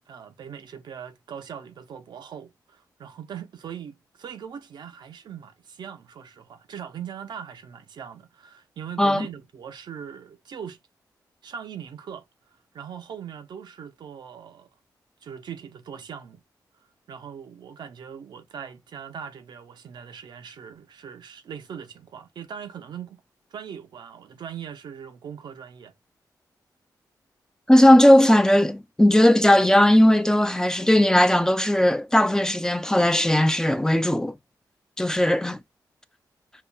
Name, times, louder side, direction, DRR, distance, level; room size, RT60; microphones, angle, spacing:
voice 1, 0.1-10.8 11.4-12.3 12.7-14.7 15.2-16.4 17.1-23.2 23.5-25.9, right 8 dB, 80° right, 0.6 m, -40 dB
voice 2, 27.7-34.3 35.0-35.6, left 1 dB, 10° left, 0.4 m, -18 dB
5.6 x 2.3 x 2.2 m
cardioid pair, 95°, 7 cm